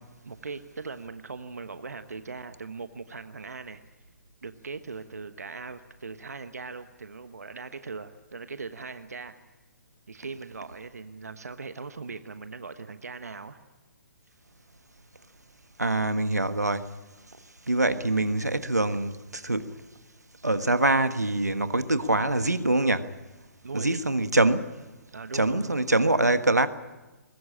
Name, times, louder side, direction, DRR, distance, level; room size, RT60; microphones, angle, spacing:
voice 1, 0.2-3.8 4.4-9.4 10.1-13.6 23.6-24.0 25.1-25.9, right 4 dB, 75° right, 1.1 m, -40 dB
voice 2, 15.8-16.9 17.7-19.7 20.4-23.1 23.7-24.7 25.3-26.7, right 2 dB, 90° right, 1.4 m, -24 dB
21.5 x 20.5 x 8.7 m
figure-of-eight pair, 130°, 9 cm